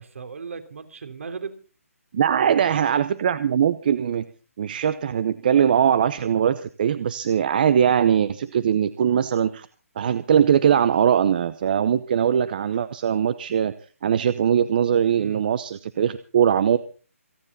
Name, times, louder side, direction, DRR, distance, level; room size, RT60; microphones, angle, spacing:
voice 1, 0.0-1.5 2.4-2.7 15.2-15.4, right 5 dB, 60° right, 6 dB, 3.2 m, -37 dB
voice 2, 2.1-4.3 4.6-9.7 10.0-13.7 14.0-16.8, right 8 dB, 35° right, 14 dB, 0.8 m, -21 dB
28.0 x 9.9 x 4.1 m, 0.38 s
hypercardioid pair, 165°, 8 cm